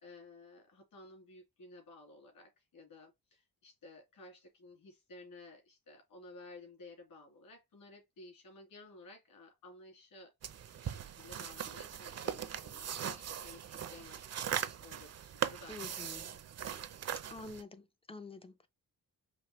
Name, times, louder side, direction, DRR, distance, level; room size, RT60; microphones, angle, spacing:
voice 1, 0.0-10.3 10.7-16.0, left 2 dB, 65° left, 2.8 m, -55 dB
sound 1, 10.4-17.6, right 9 dB, 45° right, 0.5 m, -40 dB
voice 2, 15.7-16.3 17.3-18.7, left 3 dB, 15° left, 0.3 m, -48 dB
5.1 x 2.9 x 2.9 m
wide cardioid pair, 155°, 37 cm